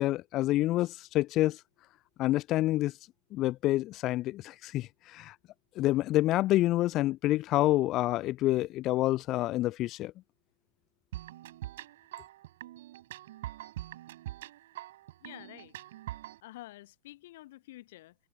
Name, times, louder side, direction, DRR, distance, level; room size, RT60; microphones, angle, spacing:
voice 1, 0.0-1.6 2.2-2.9 3.3-5.3 5.8-10.1, left 16 dB, 35° left, 0.5 m, -28 dB
sound 1, 11.1-16.4, right 14 dB, 55° right, 5.8 m, -43 dB
voice 2, 15.2-15.7 16.4-18.1, left 17 dB, 55° left, 1.0 m, -49 dB
figure-of-eight pair, 90°, 0 cm